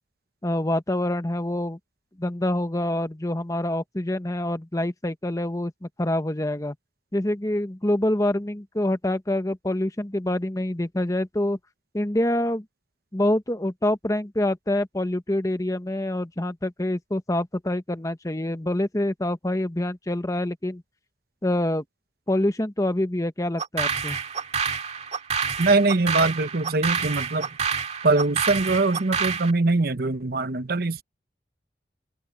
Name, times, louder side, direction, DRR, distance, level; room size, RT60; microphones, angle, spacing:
voice 1, 0.4-1.8 2.2-6.7 7.1-11.6 11.9-12.6 13.1-20.8 21.4-21.8 22.3-24.2, left 1 dB, 20° left, 1.1 m, -26 dB
sound 1, 23.6-29.5, right 6 dB, 40° right, 2.0 m, -28 dB
voice 2, 25.6-27.5 28.0-31.0, right 3 dB, 55° right, 0.9 m, -22 dB
open air
head